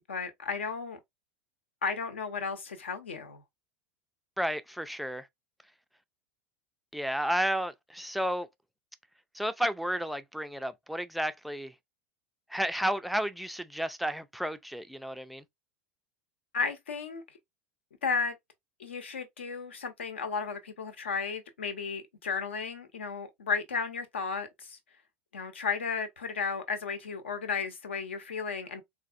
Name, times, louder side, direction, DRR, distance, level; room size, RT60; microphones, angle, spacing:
voice 1, 0.1-1.0 1.8-3.4 16.5-17.2 18.0-18.4 18.8-24.8 25.3-28.8, left 5 dB, 70° left, 0.8 m, -34 dB
voice 2, 4.4-5.3 6.9-8.5 9.3-11.7 12.5-15.4, equal, ahead, 0.3 m, -32 dB
4.0 x 2.5 x 2.4 m
figure-of-eight pair, 80°, 7 cm